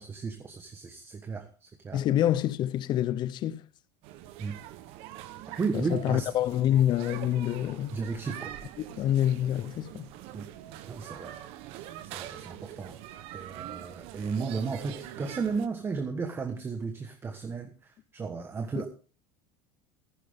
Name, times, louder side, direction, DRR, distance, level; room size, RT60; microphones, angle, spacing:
voice 1, 0.0-2.0 4.4-4.6 5.6-6.3 7.9-8.6 10.3-10.5 10.9-11.4 12.0-13.0 13.3-18.9, right 4 dB, 20° right, 1.3 m, -34 dB
voice 2, 1.9-3.7 5.7-8.0 8.9-10.1, left 11 dB, 45° left, 0.8 m, -27 dB
sound 1, 4.0-15.7, right 12 dB, 65° right, 1.1 m, -44 dB
14.5 x 10.0 x 3.6 m
supercardioid pair, 130°, 11 cm